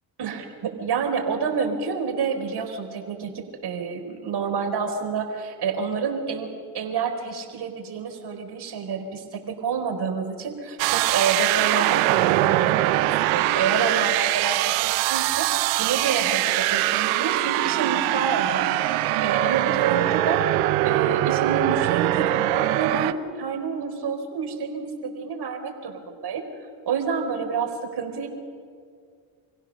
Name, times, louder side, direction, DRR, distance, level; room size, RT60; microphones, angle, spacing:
voice 1, 0.2-6.5 6.7-15.5 15.8-20.4 20.8-26.4 26.9-28.3, right 5 dB, 50° right, 3 dB, 4.3 m, -28 dB
sound 1, 10.8-23.1, right 16 dB, 85° right, 0.9 m, -22 dB
26.5 x 16.0 x 6.6 m, 2.1 s
supercardioid pair, 70°, 49 cm